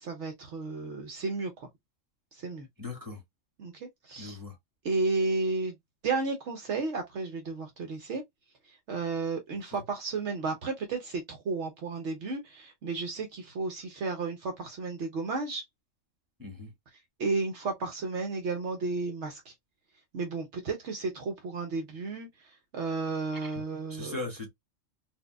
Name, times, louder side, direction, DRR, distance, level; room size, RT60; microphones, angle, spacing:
voice 1, 0.0-1.7 2.3-2.7 3.6-4.4 4.8-5.7 6.0-8.2 8.9-15.6 17.2-19.5 20.1-22.3 22.7-24.2, right 3 dB, 65° right, 1.0 m, -33 dB
voice 2, 2.8-3.2 4.2-4.5 16.4-16.7 23.4-23.6 23.9-24.5, left 3 dB, 15° right, 1.6 m, -39 dB
4.5 x 2.2 x 2.3 m
omnidirectional pair, 1.3 m